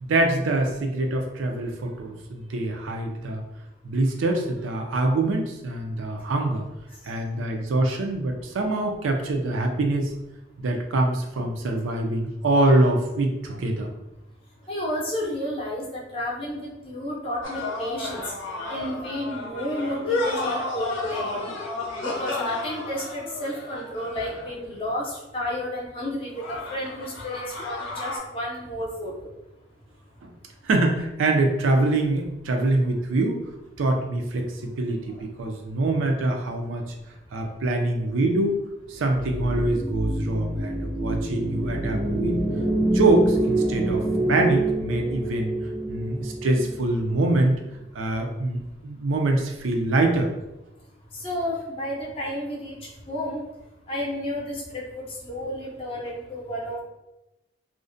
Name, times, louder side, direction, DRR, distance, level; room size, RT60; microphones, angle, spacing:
voice 1, 0.0-3.4 3.8-6.6 7.0-10.1 10.6-13.9 30.2-30.3 30.6-33.4 33.8-36.9 37.3-38.6 38.9-42.3 42.9-44.0 44.3-45.5 45.9-47.6 47.9-50.3, right 2 dB, 85° right, 3 dB, 0.4 m, -24 dB
voice 2, 14.7-18.3 18.7-21.6 22.0-29.3 41.9-42.0 51.1-53.4 53.9-56.8, equal, 30° left, -4 dB, 0.5 m, -32 dB
sound 1, 17.4-24.7 26.3-28.2, left 2 dB, 85° left, 0.6 m, -31 dB
sound 2, 39.1-47.4, right 1 dB, 30° right, 0.5 m, -27 dB
2.5 x 2.1 x 2.5 m, 0.95 s
head